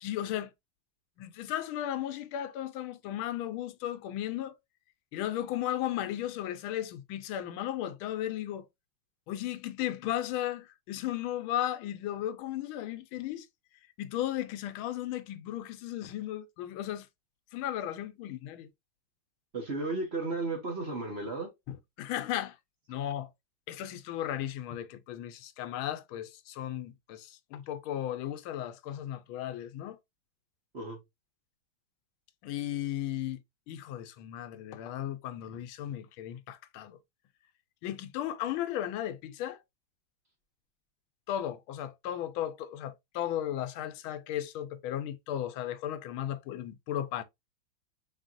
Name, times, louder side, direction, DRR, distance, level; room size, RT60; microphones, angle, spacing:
voice 1, 0.0-0.5 1.2-4.6 5.1-8.7 9.3-13.5 14.0-17.1 17.5-18.7 21.7-22.6 22.9-23.3 23.7-30.0 32.4-33.4 33.7-37.0 37.8-39.6 41.3-47.2, left 12 dB, 85° left, 1.5 m, -35 dB
voice 2, 19.5-21.5 30.7-31.0, right 3 dB, 40° right, 1.1 m, -34 dB
4.3 x 4.0 x 2.5 m
omnidirectional pair, 2.2 m